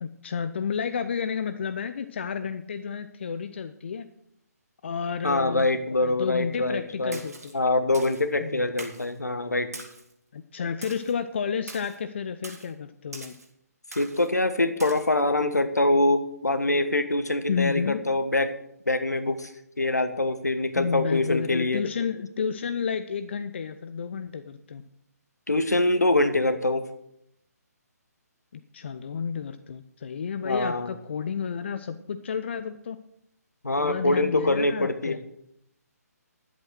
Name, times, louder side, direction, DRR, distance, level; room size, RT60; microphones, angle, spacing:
voice 1, 0.0-4.1 4.8-5.7 6.0-7.6 8.4-8.7 10.3-13.3 17.5-18.0 20.8-24.8 28.5-33.0 33.8-35.2, left 6 dB, 40° left, 11 dB, 0.5 m, -31 dB
voice 2, 5.2-7.2 7.5-9.7 13.9-18.5 18.9-19.5 19.8-21.8 25.5-26.9 30.4-30.9 33.6-35.2, left 2 dB, 75° left, 10 dB, 1.3 m, -24 dB
Splash splatter, 7.1-7.5 7.9-8.3 8.8-9.1 9.7-10.1 10.8-11.1 11.7-12.0 12.4-12.7 13.1-13.5 13.9-14.3 14.8-15.0, right 2 dB, 65° right, 2.5 m, -42 dB
11.0 x 8.0 x 6.3 m, 0.76 s
figure-of-eight pair, 140°, 9 cm